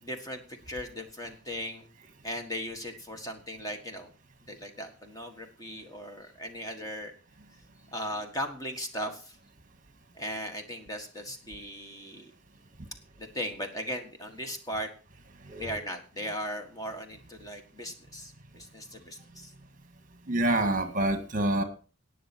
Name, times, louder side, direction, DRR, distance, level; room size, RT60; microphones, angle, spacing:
voice 1, 0.0-1.9 2.2-4.1 4.5-7.1 7.9-9.4 10.1-12.3 13.2-14.9 15.6-19.5, equal, 15° left, 5 dB, 1.6 m, -38 dB
voice 2, 15.4-15.8 20.3-21.6, right 1 dB, 40° right, 7 dB, 1.7 m, -27 dB
19.0 x 6.8 x 4.4 m, 0.36 s
head